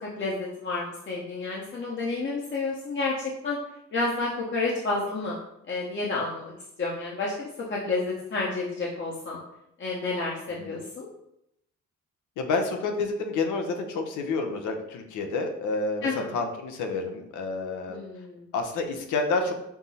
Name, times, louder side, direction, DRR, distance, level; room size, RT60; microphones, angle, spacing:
voice 1, 0.0-3.6 3.9-5.4 5.7-6.5 6.8-9.4 9.8-11.1 16.0-16.3 17.9-18.5, left 3 dB, 40° left, -4 dB, 0.9 m, -30 dB
voice 2, 12.4-18.0 18.5-19.5, left 3 dB, 80° left, 4 dB, 0.8 m, -29 dB
5.8 x 2.0 x 4.1 m, 0.80 s
cardioid pair, 90°, 30 cm